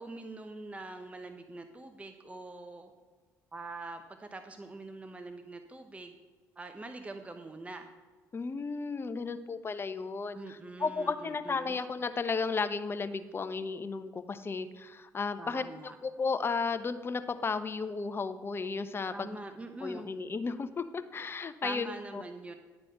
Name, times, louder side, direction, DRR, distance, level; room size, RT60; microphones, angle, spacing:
voice 1, 0.0-2.9 3.5-6.1 6.6-7.9 10.3-11.8 15.4-16.0 19.1-20.1 21.6-22.5, right 2 dB, 20° right, 7 dB, 0.9 m, -44 dB
voice 2, 8.3-19.4 19.8-22.2, left 4 dB, 30° left, 11 dB, 0.8 m, -34 dB
11.0 x 4.1 x 7.8 m, 1.4 s
supercardioid pair, 75°, 7 cm